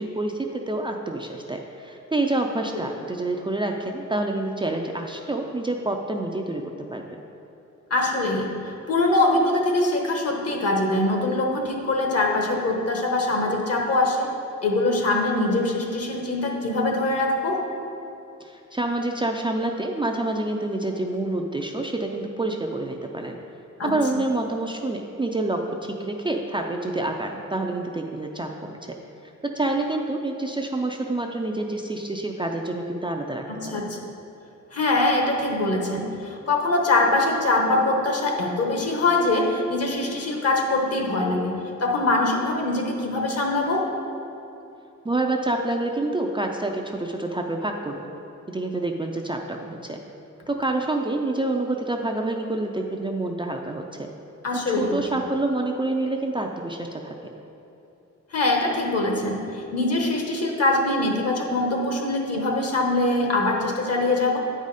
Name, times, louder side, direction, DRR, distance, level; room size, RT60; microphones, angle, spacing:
voice 1, 0.0-6.6 6.9-7.0 18.4-23.4 23.8-29.0 29.4-33.8 45.0-48.1 48.5-50.0 50.5-54.1 54.7-57.2, right 2 dB, 15° right, 1 dB, 0.4 m, -27 dB
voice 2, 7.9-14.3 14.6-17.6 23.8-23.9 33.5-34.0 34.7-43.9 54.4-55.0 58.3-64.4, left 2 dB, 55° left, 1 dB, 1.2 m, -23 dB
9.0 x 4.9 x 4.1 m, 2.8 s
cardioid pair, 105°, 30 cm